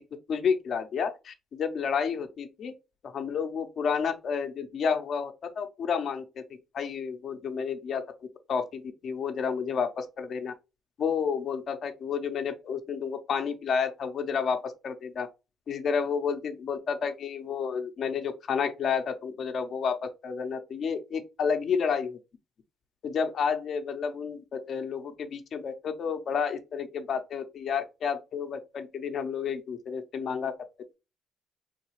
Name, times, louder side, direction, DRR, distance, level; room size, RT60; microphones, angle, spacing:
voice 1, 0.3-2.7 3.1-6.2 6.7-8.0 8.5-10.5 11.0-15.3 15.7-20.0 20.2-22.2 23.0-30.5, left 6 dB, 60° left, 0.6 m, -30 dB
3.7 x 2.3 x 3.0 m
cardioid pair, 90°, 0 cm